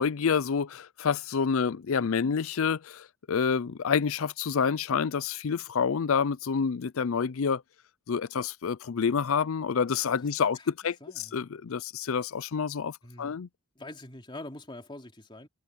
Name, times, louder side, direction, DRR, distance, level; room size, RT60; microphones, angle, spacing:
voice 1, 0.0-7.6 8.1-13.5, left 6 dB, 65° left, 0.5 m, -28 dB
voice 2, 10.5-11.4 13.0-13.4 13.7-15.5, left 1 dB, 20° left, 3.3 m, -45 dB
head